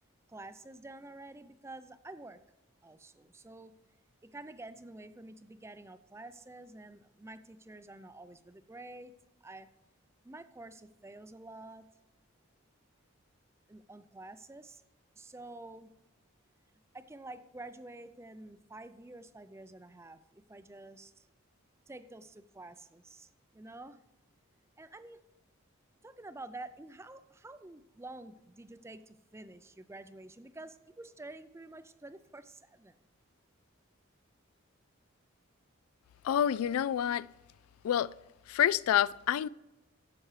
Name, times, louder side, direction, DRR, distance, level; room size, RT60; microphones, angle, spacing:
voice 1, 0.3-2.4 2.8-3.7 4.2-9.1 9.4-9.7 10.2-11.8 13.7-14.8 15.2-15.9 16.9-21.3 21.9-24.0 24.8-25.2 26.0-33.0, right 2 dB, 15° right, 0.4 m, -49 dB
voice 2, 36.2-37.3 37.8-38.1 38.5-39.5, left 10 dB, 90° left, 0.3 m, -28 dB
12.0 x 7.8 x 3.2 m
head